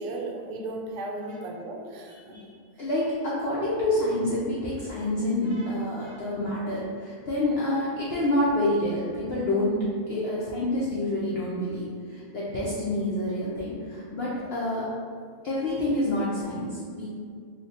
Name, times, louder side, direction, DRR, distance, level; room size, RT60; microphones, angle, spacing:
voice 1, 0.0-2.4, right 2 dB, 85° right, 0 dB, 1.1 m, -35 dB
voice 2, 2.8-14.9 15.4-17.1, left 1 dB, 85° left, -7 dB, 0.5 m, -27 dB
3.0 x 2.1 x 4.0 m, 2.1 s
omnidirectional pair, 1.6 m